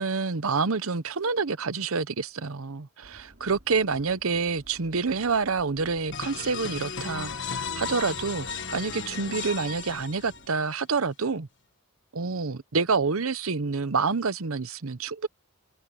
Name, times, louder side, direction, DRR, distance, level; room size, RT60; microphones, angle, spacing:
voice 1, 0.0-8.5 8.7-11.5 12.1-15.3, right 4 dB, 65° right, 0.9 m, -28 dB
sound 1, 3.0-10.5, equal, 45° right, 4.9 m, -53 dB
sound 2, 6.1-10.7, left 5 dB, 55° left, 1.5 m, -35 dB
head